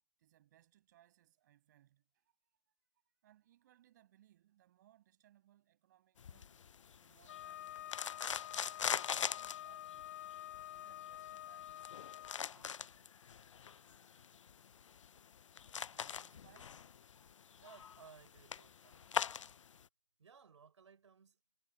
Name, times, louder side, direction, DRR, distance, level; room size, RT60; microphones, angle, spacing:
voice 1, 0.2-2.3 3.2-6.6 7.0-10.3 10.6-11.9 12.5-12.9 15.9-16.9, right 13 dB, 35° right, 5.9 m, -69 dB
sound 1, 6.2-19.8, left 8 dB, 80° left, 0.5 m, -43 dB
Wind instrument woodwind instrument, 7.3-12.4, left 13 dB, 35° left, 1.0 m, -48 dB
voice 2, 17.6-19.2 20.2-21.4, right 6 dB, 70° right, 5.3 m, -60 dB
hypercardioid pair, 160°, 16 cm